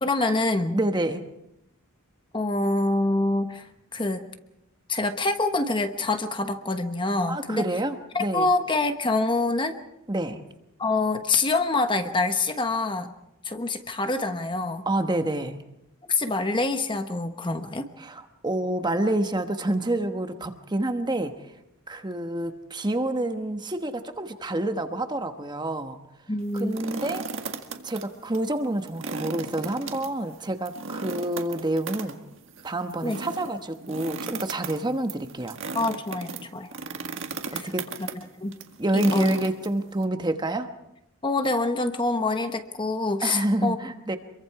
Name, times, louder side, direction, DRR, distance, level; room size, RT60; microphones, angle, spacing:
voice 1, 0.0-0.8 2.3-4.2 4.9-7.6 8.1-9.8 10.8-13.1 13.4-14.9 16.1-17.9 26.3-26.8 33.0-33.2 35.7-36.7 37.5-37.7 38.0-38.6 38.9-39.4 41.2-43.8, left 2 dB, 20° left, 7 dB, 1.2 m, -26 dB
voice 2, 0.7-1.2 7.3-8.5 10.1-10.4 14.9-15.6 18.0-21.3 21.9-26.0 26.5-27.2 27.8-32.2 32.6-35.6 37.5-37.8 38.8-40.7 43.2-44.2, right 1 dB, 20° right, 7 dB, 1.2 m, -28 dB
sound 1, 26.4-28.0 28.3-28.4 28.8-40.0, right 4 dB, 60° right, 1.9 m, -36 dB
27.0 x 23.0 x 4.8 m, 0.86 s
head